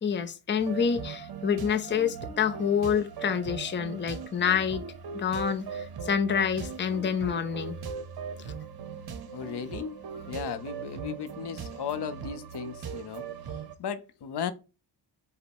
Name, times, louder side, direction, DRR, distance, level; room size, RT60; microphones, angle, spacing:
voice 1, 0.0-4.9 5.1-7.7 8.5-8.6, left 7 dB, 30° left, 0.5 m, -27 dB
sound 1, 0.6-13.8, right 6 dB, 65° right, 0.8 m, -39 dB
voice 2, 9.3-10.0 10.3-14.5, left 7 dB, 75° left, 0.6 m, -36 dB
5.2 x 2.1 x 4.5 m
wide cardioid pair, 120°, 41 cm